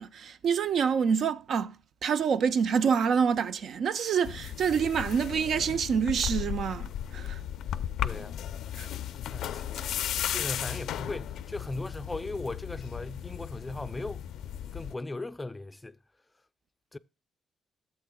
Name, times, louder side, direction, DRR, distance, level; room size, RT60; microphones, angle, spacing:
voice 1, 0.0-7.4 8.8-8.9, right 6 dB, 65° right, 0.5 m, -27 dB
sound 1, 4.2-14.9, left 10 dB, 80° left, 0.5 m, -35 dB
voice 2, 8.0-8.4 8.8-9.0 9.3-9.9 10.3-14.3 14.7-16.0 16.9-17.0, left 2 dB, 15° left, 0.4 m, -38 dB
13.5 x 7.7 x 2.2 m
cardioid pair, 90°, 0 cm